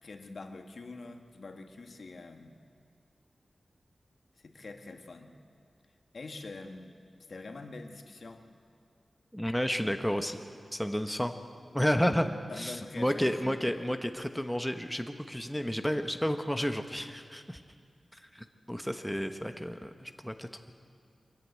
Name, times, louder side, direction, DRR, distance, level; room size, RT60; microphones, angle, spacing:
voice 1, 0.0-2.5 4.4-5.3 6.1-7.0 7.3-8.4 12.0-12.2 12.5-13.6, left 3 dB, 65° left, 5 dB, 1.5 m, -45 dB
voice 2, 9.3-10.4 10.7-11.3 11.7-12.3 12.6-17.6 18.3-20.7, equal, 5° left, 6 dB, 0.9 m, -31 dB
23.0 x 14.5 x 9.4 m, 2.2 s
wide cardioid pair, 115°, 0 cm